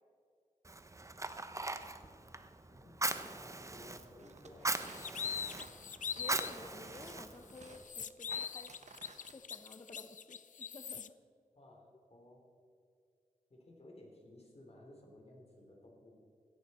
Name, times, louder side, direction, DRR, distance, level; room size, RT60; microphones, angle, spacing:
Fire, 0.6-7.8, right 2 dB, 20° right, 0.7 m, -41 dB
voice 1, 2.7-4.9 11.5-12.5 13.5-16.2, left 1 dB, 50° left, 0 dB, 3.1 m, -57 dB
sound 1, 4.2-9.3, right 4 dB, 55° right, 1.0 m, -57 dB
sound 2, 4.8-6.6 7.0-7.1 7.5-11.1, left 7 dB, 65° left, 0.5 m, -42 dB
voice 2, 6.2-8.7 9.3-11.1, left 2 dB, 30° left, 5 dB, 0.8 m, -52 dB
16.5 x 11.5 x 4.3 m, 2.4 s
wide cardioid pair, 90°, 14 cm